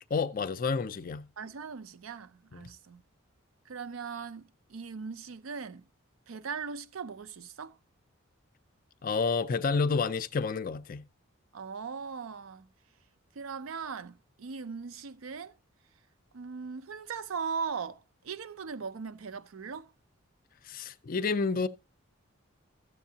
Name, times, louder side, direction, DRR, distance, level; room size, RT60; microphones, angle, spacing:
voice 1, 0.1-1.3 2.5-2.6 9.0-11.1 20.6-21.7, left 4 dB, 40° left, 0.4 m, -29 dB
voice 2, 1.4-3.0 3.7-5.8 6.3-7.8 11.5-12.7 13.4-15.6 16.3-19.9, right 5 dB, 75° right, 0.5 m, -39 dB
13.0 x 7.8 x 2.8 m
head